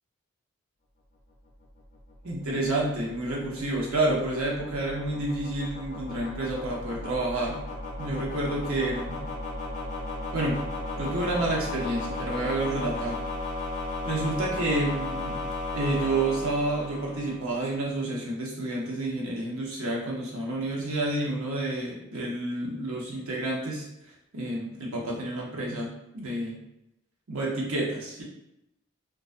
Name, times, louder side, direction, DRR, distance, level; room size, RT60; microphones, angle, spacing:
sound 1, 1.6-17.8, left 2 dB, 35° left, 0.5 m, -35 dB
voice 1, 2.2-7.6 8.0-9.2 10.3-10.6 11.0-13.2 14.0-15.4 15.7-23.9 24.3-26.6 27.3-28.2, right 2 dB, 80° right, -3 dB, 0.7 m, -29 dB
2.3 x 2.2 x 2.4 m, 0.85 s
head